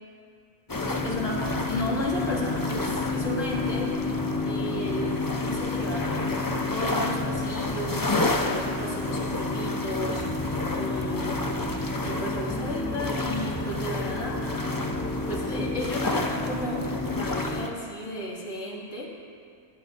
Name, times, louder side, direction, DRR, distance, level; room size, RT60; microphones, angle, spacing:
sound 1, 0.7-17.7, left 2 dB, 20° left, 0.6 m, -29 dB
voice 1, 0.9-4.0 4.4-10.3 10.7-11.4 12.0-14.4 15.3-19.1, left 1 dB, 75° left, -4 dB, 2.8 m, -34 dB
27.5 x 11.0 x 2.7 m, 2.3 s
omnidirectional pair, 1.3 m